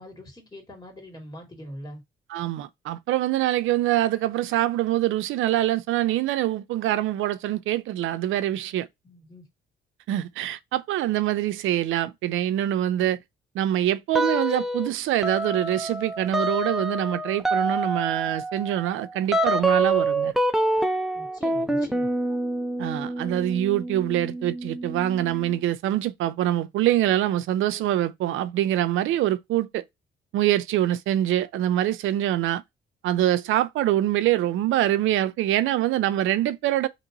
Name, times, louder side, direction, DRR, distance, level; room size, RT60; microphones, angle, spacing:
voice 1, 0.0-2.0 9.0-9.4 21.1-22.1, equal, 20° left, 2.2 m, -43 dB
voice 2, 2.3-8.9 10.1-13.2 13.5-20.3 22.8-29.8 30.3-32.6 33.0-36.9, right 13 dB, 85° right, 0.5 m, -24 dB
sound 1, 14.1-14.9 15.2-25.6, right 1 dB, ahead, 0.6 m, -27 dB
3.0 x 3.0 x 3.8 m
cardioid pair, 90°, 20 cm